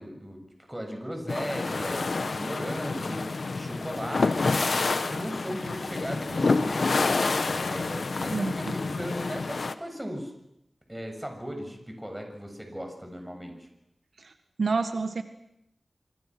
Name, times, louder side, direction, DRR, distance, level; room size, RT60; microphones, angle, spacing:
voice 1, 0.0-7.0 7.5-10.3 10.9-13.7, equal, 10° right, 4 dB, 7.1 m, -37 dB
sound 1, 1.3-9.7, left 3 dB, 75° left, 1.4 m, -28 dB
voice 2, 8.3-8.7 14.2-14.3 14.6-15.2, right 4 dB, 85° right, 7 dB, 1.8 m, -28 dB
28.0 x 26.5 x 6.2 m, 0.80 s
wide cardioid pair, 85°, 0 cm